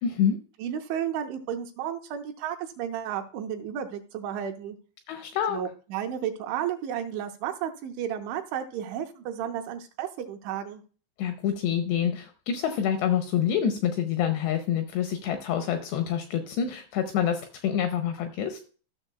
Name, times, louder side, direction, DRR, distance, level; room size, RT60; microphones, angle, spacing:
voice 1, 0.0-0.4 5.1-5.6 11.2-18.6, left 9 dB, 85° left, 7 dB, 2.5 m, -27 dB
voice 2, 0.6-4.8 5.5-10.8, right 9 dB, 85° right, 5 dB, 3.0 m, -33 dB
15.0 x 6.3 x 2.2 m, 0.38 s
omnidirectional pair, 5.5 m